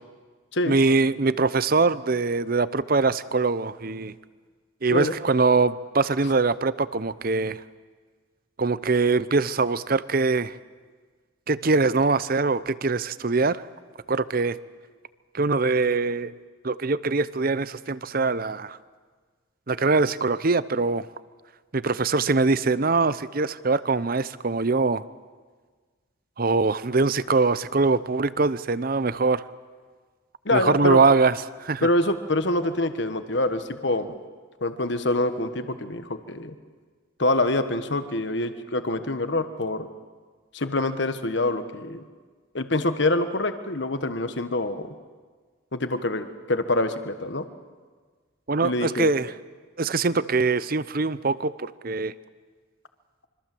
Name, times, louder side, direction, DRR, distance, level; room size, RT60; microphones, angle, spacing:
voice 1, 0.6-4.1 4.8-7.6 8.6-10.6 11.5-13.6 14.1-14.6 15.3-16.3 16.6-18.8 19.7-21.1 21.7-25.0 26.4-29.4 30.5-31.9 48.5-49.3 49.8-52.1, right 3 dB, 45° right, 16 dB, 0.7 m, -23 dB
voice 2, 30.4-31.0 31.8-34.1 34.6-36.5 37.2-39.9 40.5-42.0 42.5-44.9 45.7-47.4 48.6-49.1, left 2 dB, 60° left, 9 dB, 1.4 m, -25 dB
25.5 x 24.5 x 7.8 m, 1.5 s
head